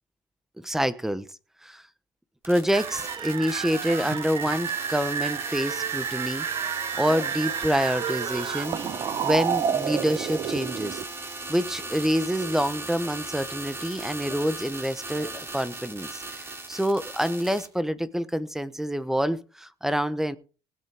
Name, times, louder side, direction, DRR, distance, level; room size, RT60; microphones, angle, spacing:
voice 1, 0.6-1.3 1.6-1.8 2.4-8.8 9.2-11.0 11.5-16.1 16.4-20.4, equal, 5° right, 15 dB, 0.9 m, -27 dB
sound 1, 2.4-17.7, right 3 dB, 20° right, 2.7 m, -38 dB
sound 2, 2.7-11.0, right 8 dB, 40° right, 0.7 m, -30 dB
Telephone, 6.0-6.2 6.5-7.4 7.9-13.4 13.7-14.8 15.1-15.5 15.8-15.9 16.2-16.8, left 5 dB, 25° left, 1.4 m, -48 dB
19.5 x 8.2 x 3.5 m, 0.34 s
cardioid pair, 125°, 12 cm